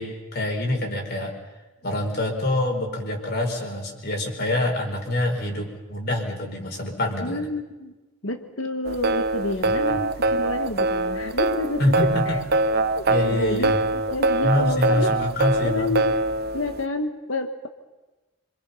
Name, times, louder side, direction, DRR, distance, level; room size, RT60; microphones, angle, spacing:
voice 1, 0.0-1.3 1.8-7.5 9.9-10.0 11.8-12.4 13.1-13.8 14.4-16.0, left 1 dB, 55° left, 2 dB, 4.8 m, -26 dB
voice 2, 7.2-7.9 8.2-12.4 13.0-15.2 15.6-16.2 16.5-17.7, left 2 dB, 85° left, 6 dB, 1.5 m, -29 dB
sound 1, 8.9-16.8, right 2 dB, 50° right, 0.9 m, -23 dB
26.5 x 25.0 x 5.7 m, 1.1 s
head